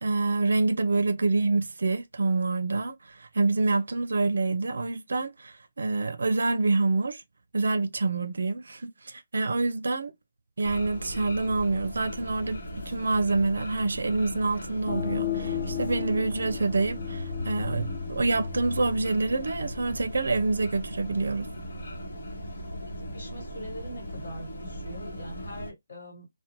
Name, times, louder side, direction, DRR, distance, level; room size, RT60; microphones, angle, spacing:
voice 1, 0.0-7.2 7.5-10.1 10.6-12.6 12.9-21.5, right 3 dB, 75° right, 0.4 m, -27 dB
sound 1, 10.6-25.7, equal, 80° left, 0.9 m, -38 dB
sound 2, 14.9-20.3, left 7 dB, 20° left, 0.6 m, -34 dB
voice 2, 22.9-26.3, equal, 45° left, 1.3 m, -43 dB
2.5 x 2.1 x 2.8 m
hypercardioid pair, 170°, 0 cm